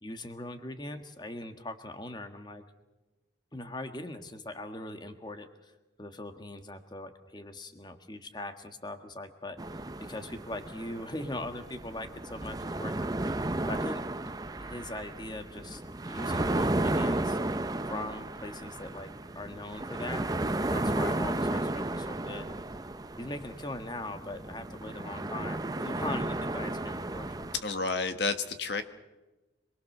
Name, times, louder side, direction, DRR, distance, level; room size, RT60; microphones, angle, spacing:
voice 1, 0.0-2.6 3.5-5.7 6.0-13.4 13.7-14.0 14.6-17.4 17.9-20.3 20.7-22.6 23.2-27.5, left 1 dB, 25° left, 7 dB, 1.6 m, -40 dB
sound 1, 9.6-27.6, right 2 dB, 20° right, 0.7 m, -33 dB
voice 2, 27.6-28.8, left 3 dB, 70° left, 8 dB, 1.5 m, -30 dB
26.5 x 21.0 x 6.7 m, 1.1 s
head